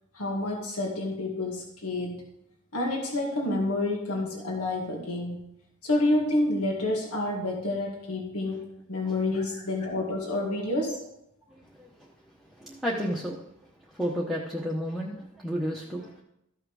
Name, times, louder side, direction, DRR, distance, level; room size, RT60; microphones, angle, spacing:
voice 1, 0.1-2.2 2.7-5.4 5.8-11.0, left 2 dB, 75° left, -1 dB, 2.2 m, -29 dB
voice 2, 11.5-12.1 12.5-13.4 13.9-16.2, equal, ahead, -4 dB, 1.0 m, -32 dB
14.0 x 5.8 x 4.9 m, 0.79 s
head